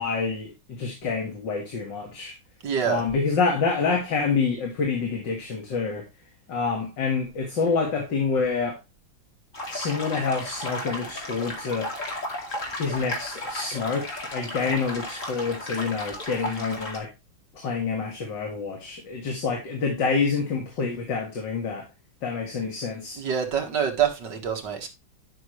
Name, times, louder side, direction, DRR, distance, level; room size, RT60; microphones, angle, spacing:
voice 1, 0.0-2.4 2.8-6.1 6.5-8.8 9.7-11.9 12.8-17.1 17.5-21.9 22.2-23.2, left 5 dB, 65° left, 2.4 m, -27 dB
voice 2, 2.6-3.0 23.2-24.9, right 8 dB, 60° right, 2.2 m, -26 dB
sound 1, 9.5-17.0, left 1 dB, 40° left, 2.8 m, -34 dB
11.5 x 6.1 x 3.1 m
omnidirectional pair, 2.2 m